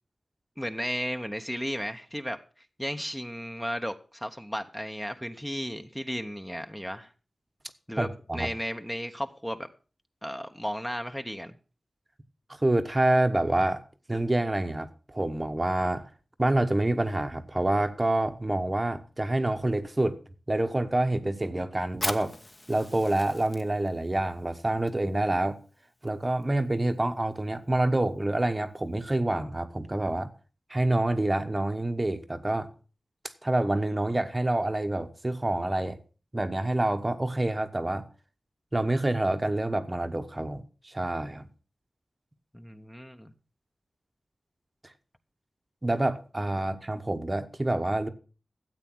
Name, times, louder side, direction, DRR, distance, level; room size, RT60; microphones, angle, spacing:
voice 1, 0.6-7.1 7.9-8.1 8.3-9.7 10.2-11.5 42.5-43.3, equal, 5° left, 1.0 m, -34 dB
voice 2, 8.0-8.5 12.6-13.8 14.1-16.1 16.4-20.2 20.5-22.4 22.7-25.6 26.0-30.3 30.7-32.7 33.4-36.0 36.3-38.1 38.7-41.5 45.8-48.1, right 1 dB, 25° right, 1.1 m, -27 dB
Fire, 21.9-29.1, left 2 dB, 30° left, 1.3 m, -42 dB
13.0 x 8.3 x 6.2 m
wide cardioid pair, 85°, 0 cm